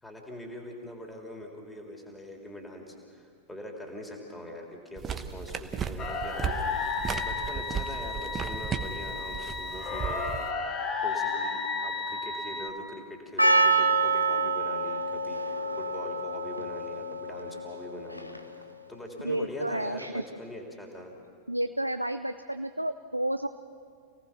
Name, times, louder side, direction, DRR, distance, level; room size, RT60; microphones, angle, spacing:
voice 1, 0.0-10.6 11.0-21.1, left 1 dB, 10° left, 0 dB, 3.4 m, -43 dB
sound 1, 5.0-10.5, right 7 dB, 25° right, 1.1 m, -35 dB
sound 2, 6.0-12.7, left 4 dB, 25° left, 3.1 m, -33 dB
Percussion, 13.4-18.6, right 3 dB, 90° left, 1.1 m, -27 dB
voice 2, 19.2-20.2 21.5-23.5, right 1 dB, 85° right, 9 dB, 0.5 m, -31 dB
29.0 x 18.5 x 6.0 m, 2.2 s
figure-of-eight pair, 90°, 0 cm